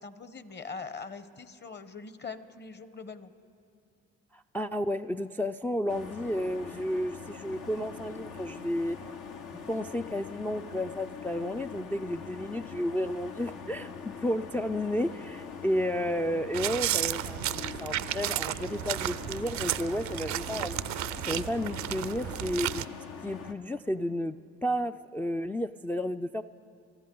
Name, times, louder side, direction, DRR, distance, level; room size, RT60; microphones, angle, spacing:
voice 1, 0.0-3.3, left 4 dB, 35° left, 12 dB, 1.0 m, -42 dB
voice 2, 4.3-9.0 9.7-22.9 23.2-24.4 24.6-26.4, equal, 5° left, 5 dB, 0.3 m, -32 dB
sound 1, 5.9-23.5, left 6 dB, 70° left, 1.0 m, -43 dB
sound 2, 16.5-22.8, right 14 dB, 65° right, 0.5 m, -33 dB
26.5 x 13.5 x 3.9 m, 2.4 s
hypercardioid pair, 55°, 31 cm